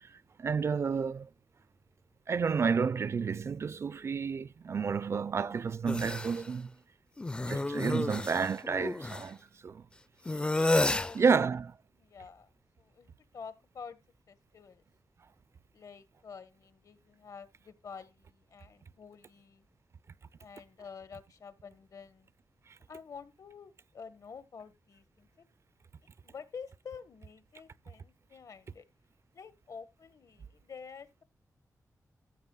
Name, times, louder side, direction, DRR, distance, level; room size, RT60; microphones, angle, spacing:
voice 1, 0.4-1.3 2.3-6.7 7.4-9.4 9.6-9.8 11.2-11.7, right 5 dB, 50° right, 0.4 m, -30 dB
sound 1, 5.9-6.4 7.2-9.3 10.3-11.1, left 2 dB, 15° left, 0.4 m, -30 dB
voice 2, 12.0-14.0 14.3-14.8 15.7-19.7 20.4-22.3 22.9-25.4 26.2-28.8 29.3-31.2, left 6 dB, 65° left, 1.3 m, -49 dB
15.0 x 7.9 x 2.3 m
wide cardioid pair, 155°, 6 cm